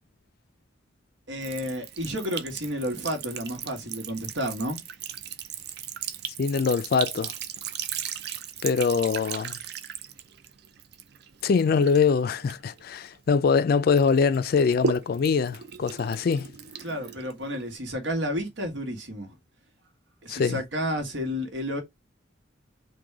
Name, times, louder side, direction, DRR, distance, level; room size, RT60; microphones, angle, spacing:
voice 1, 1.3-4.8 16.8-19.3 20.2-21.8, equal, 80° right, 1.5 m, -31 dB
Sink (filling or washing) / Trickle dribble, 1.4-13.5 13.9-17.8, right 7 dB, 60° right, 0.5 m, -37 dB
voice 2, 6.4-7.3 8.6-9.6 11.4-16.5 20.3-20.6, left 5 dB, 50° left, 0.3 m, -23 dB
3.8 x 2.6 x 4.7 m
head